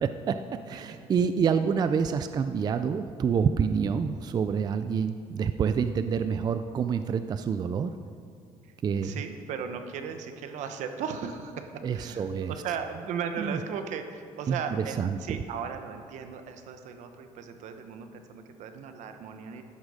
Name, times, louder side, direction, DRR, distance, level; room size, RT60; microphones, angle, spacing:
voice 1, 0.0-7.9 8.8-9.2 11.8-12.5 13.4-13.6 14.5-15.4, right 6 dB, 35° right, 10 dB, 0.4 m, -27 dB
voice 2, 9.0-11.7 11.9-19.6, right 6 dB, 75° right, 7 dB, 1.1 m, -37 dB
12.5 x 10.0 x 5.0 m, 2.3 s
cardioid pair, 135°, 13 cm